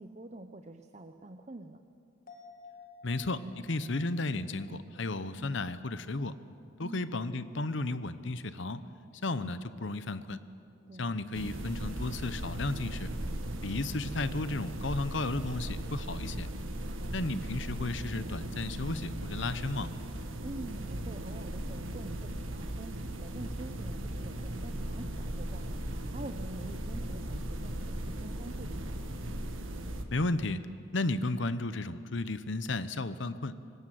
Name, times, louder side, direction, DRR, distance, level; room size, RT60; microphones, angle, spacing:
voice 1, 0.0-1.8 6.8-7.1 10.9-11.2 17.0-17.4 20.4-28.9, right 2 dB, 35° right, 7 dB, 0.8 m, -46 dB
sound 1, 2.3-6.0 6.3-6.4, left 3 dB, 45° left, 2.3 m, -55 dB
voice 2, 3.0-6.4 6.8-8.8 9.2-10.4 11.0-13.1 13.6-16.5 17.1-19.9 30.1-30.6 30.9-33.6, left 2 dB, 65° left, 13 dB, 0.9 m, -33 dB
sound 2, 11.3-30.0, right 1 dB, 75° right, 1.7 m, -38 dB
24.5 x 19.5 x 7.8 m, 2.5 s
head